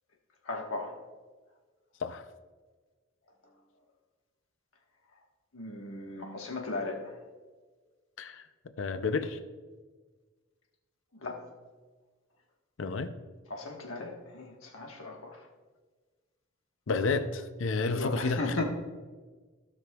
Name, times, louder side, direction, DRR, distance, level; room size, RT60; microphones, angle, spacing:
voice 1, 0.4-0.9 5.5-7.1 11.2-11.4 13.5-15.4 17.8-18.6, left 2 dB, 80° left, 1 dB, 1.4 m, -36 dB
voice 2, 8.8-9.4 12.8-13.1 16.9-18.6, left 4 dB, 65° left, 10 dB, 0.5 m, -31 dB
15.5 x 6.0 x 2.3 m, 1.4 s
head